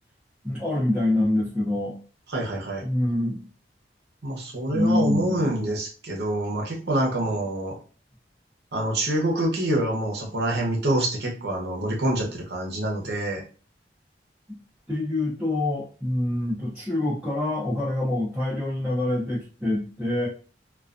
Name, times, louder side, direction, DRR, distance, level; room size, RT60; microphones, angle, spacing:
voice 1, 0.4-2.0 2.8-3.4 4.7-5.5 14.9-20.3, left 1 dB, 5° right, -9 dB, 0.6 m, -25 dB
voice 2, 2.3-2.8 4.2-7.7 8.7-13.4, right 1 dB, 70° right, -1 dB, 0.8 m, -26 dB
2.4 x 2.3 x 2.4 m, 0.38 s
head